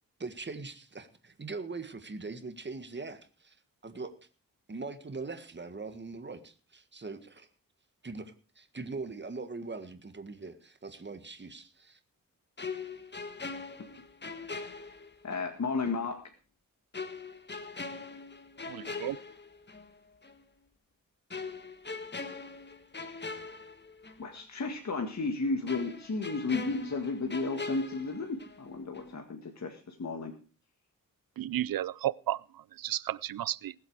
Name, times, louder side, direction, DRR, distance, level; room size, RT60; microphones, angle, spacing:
voice 1, 0.2-3.6 3.8-4.2 4.7-7.5 8.0-12.0, right 3 dB, 30° right, 1.7 m, -41 dB
sound 1, 12.6-15.5 15.8-16.0 16.9-19.9 20.2-20.4 21.3-24.3 24.6-24.7 25.7-28.7 28.9-29.2, left 4 dB, 30° left, 1.6 m, -41 dB
voice 2, 15.2-16.2 24.2-30.3, left 3 dB, 55° left, 2.0 m, -33 dB
voice 3, 18.7-19.2 31.4-33.7, right 13 dB, 80° right, 0.6 m, -33 dB
19.5 x 7.9 x 4.8 m
cardioid pair, 75°, 34 cm